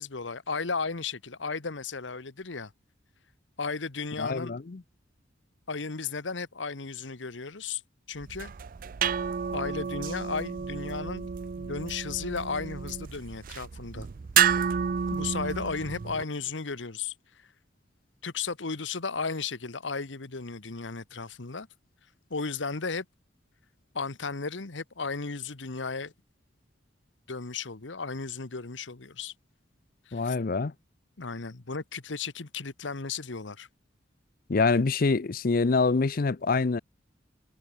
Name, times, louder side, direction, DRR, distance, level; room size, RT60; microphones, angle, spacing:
voice 1, 0.0-2.7 3.6-4.6 5.7-7.8 8.1-8.5 9.5-11.3 11.6-14.1 15.1-17.1 18.2-21.7 22.3-23.0 23.9-26.1 27.3-29.3 30.1-30.4 31.2-33.7, left 4 dB, 80° left, 1.3 m, -34 dB
voice 2, 4.2-4.8 30.1-30.7 34.5-36.8, left 4 dB, 50° left, 0.5 m, -25 dB
sound 1, 8.2-16.2, right 8 dB, 50° right, 0.4 m, -30 dB
head